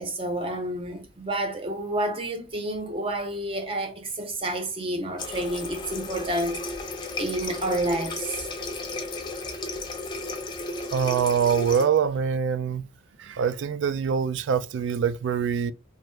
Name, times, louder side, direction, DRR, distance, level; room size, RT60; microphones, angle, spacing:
voice 1, 0.0-6.6 7.2-8.5, right 1 dB, 30° right, 0.6 m, -29 dB
Water tap faucet, 5.2-11.9, left 2 dB, 25° left, 0.4 m, -34 dB
voice 2, 10.9-12.9 13.2-15.7, right 7 dB, 70° right, 0.3 m, -24 dB
2.7 x 2.0 x 3.1 m
head